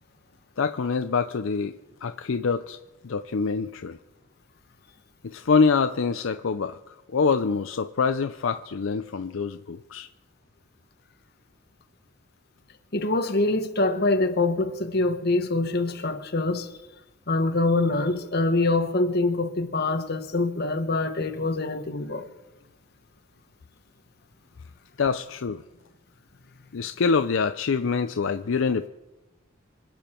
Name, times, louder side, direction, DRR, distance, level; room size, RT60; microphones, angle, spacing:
voice 1, 0.6-2.8 3.0-4.0 5.2-10.1 25.0-25.6 26.7-28.9, left 5 dB, 75° left, 0.5 m, -25 dB
voice 2, 12.9-16.7 17.3-22.3, left 2 dB, 50° left, 1.2 m, -24 dB
26.0 x 8.8 x 4.4 m
head